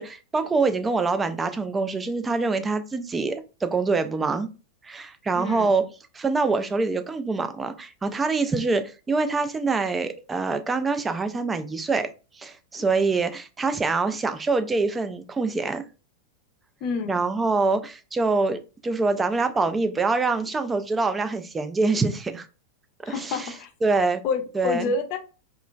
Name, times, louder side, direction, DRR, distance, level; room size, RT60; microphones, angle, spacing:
voice 1, 0.0-4.5 4.8-5.8 6.1-12.1 12.3-15.8 17.1-22.5 23.1-23.5 23.8-24.2 24.5-24.9, right 3 dB, 15° right, 0.3 m, -25 dB
voice 2, 5.3-5.7 16.8-17.2 23.0-23.7 24.2-25.2, left 4 dB, 40° left, 0.5 m, -28 dB
2.8 x 2.4 x 2.2 m
figure-of-eight pair, 90°, 0 cm